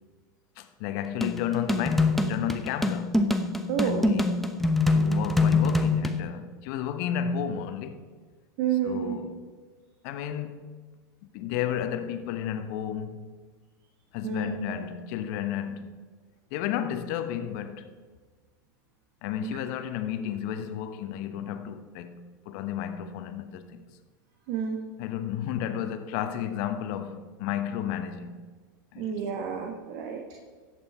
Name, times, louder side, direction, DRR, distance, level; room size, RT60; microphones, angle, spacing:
voice 1, 0.6-3.2 3.8-4.4 4.9-8.0 8.8-9.3 10.0-10.6 11.3-13.4 14.1-16.0 16.5-17.9 19.2-23.8 25.0-28.4 28.9-29.2, left 9 dB, 60° left, 1.1 m, -32 dB
sound 1, 1.2-6.2, left 2 dB, ahead, 0.9 m, -24 dB
voice 2, 3.7-4.1 8.6-9.2 14.2-14.6 19.4-19.6 24.5-24.8 29.0-30.2, right 8 dB, 60° right, 1.5 m, -29 dB
14.0 x 8.8 x 4.4 m
hypercardioid pair, 105°, 11 cm